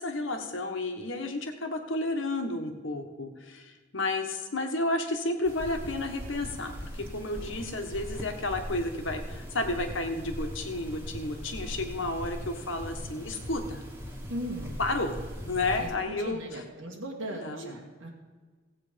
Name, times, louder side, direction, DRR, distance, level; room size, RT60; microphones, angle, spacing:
voice 1, 0.0-13.8 14.8-15.2 15.4-16.4 17.4-17.7, left 2 dB, 65° left, 5 dB, 1.5 m, -32 dB
sound 1, 5.4-15.9, equal, 10° right, 1.7 m, -40 dB
voice 2, 14.3-14.8 15.8-18.1, equal, 90° right, -2 dB, 1.8 m, -38 dB
16.0 x 8.3 x 5.2 m, 1.4 s
head